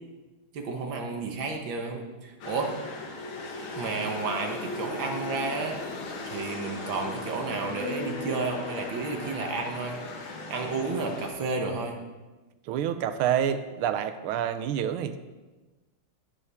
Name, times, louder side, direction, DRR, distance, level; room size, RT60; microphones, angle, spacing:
voice 1, 0.5-2.7 3.7-5.8 6.2-10.0 10.5-12.0, right 3 dB, 70° right, 3 dB, 1.9 m, -31 dB
sound 1, 2.4-11.3, left 3 dB, 75° left, 2.1 m, -37 dB
voice 2, 12.7-15.2, right 9 dB, 85° right, 11 dB, 1.5 m, -28 dB
16.5 x 7.0 x 3.5 m, 1.2 s
omnidirectional pair, 2.3 m